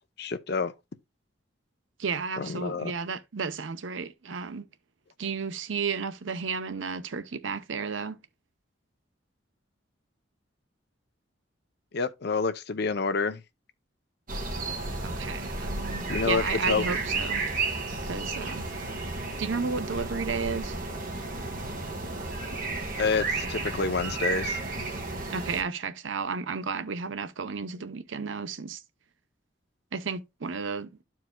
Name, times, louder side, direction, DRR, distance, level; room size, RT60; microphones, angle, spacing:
voice 1, 0.2-0.7 2.4-2.9 11.9-13.4 16.1-16.9 23.0-24.6, left 4 dB, 60° left, 0.6 m, -28 dB
voice 2, 2.0-4.7 5.2-8.2 15.0-17.5 18.0-18.7 19.4-20.8 25.3-28.8 29.9-30.9, right 5 dB, 85° right, 0.7 m, -33 dB
sound 1, 14.3-25.6, right 3 dB, 45° right, 1.7 m, -32 dB
12.5 x 4.7 x 2.2 m
head